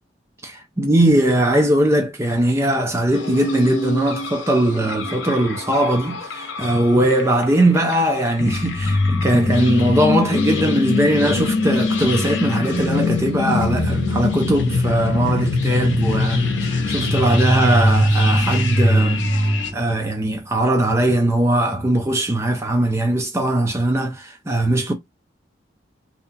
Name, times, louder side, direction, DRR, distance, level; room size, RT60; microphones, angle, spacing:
voice 1, 0.4-19.2 19.7-24.9, right 1 dB, 15° right, 0.4 m, -20 dB
sound 1, 3.1-19.7, left 2 dB, 75° left, 0.6 m, -22 dB
2.7 x 2.3 x 2.4 m
head